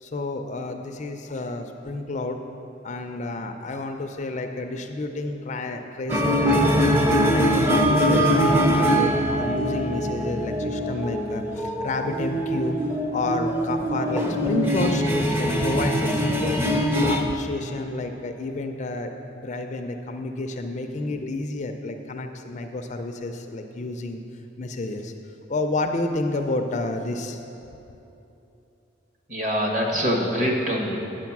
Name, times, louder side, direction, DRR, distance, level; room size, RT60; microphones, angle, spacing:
voice 1, 0.0-2.4 2.8-24.2 24.6-25.1 25.5-27.4, left 2 dB, 35° left, 5 dB, 0.4 m, -30 dB
sound 1, 6.1-17.2, equal, 10° right, 0.6 m, -22 dB
voice 2, 29.3-31.0, equal, 40° right, -1 dB, 1.3 m, -24 dB
9.1 x 6.4 x 5.9 m, 2.9 s
head